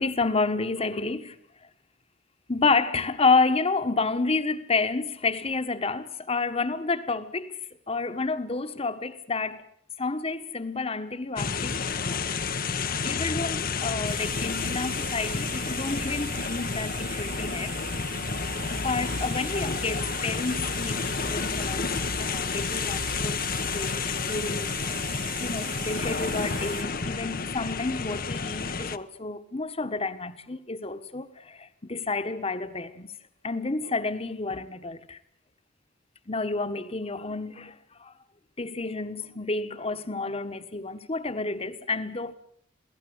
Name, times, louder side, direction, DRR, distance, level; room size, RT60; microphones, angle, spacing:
voice 1, 0.0-1.4 2.5-7.6 7.9-9.6 10.0-12.4 13.0-17.8 18.7-21.9 22.2-23.5 23.7-24.9 25.3-33.1 33.4-35.2 36.3-38.1 38.6-42.3, left 3 dB, 30° left, 1.4 m, -30 dB
sound 1, 11.4-29.0, left 5 dB, 50° left, 1.0 m, -30 dB
sound 2, 14.0-26.8, right 7 dB, 75° right, 2.7 m, -40 dB
27.5 x 18.0 x 8.0 m
head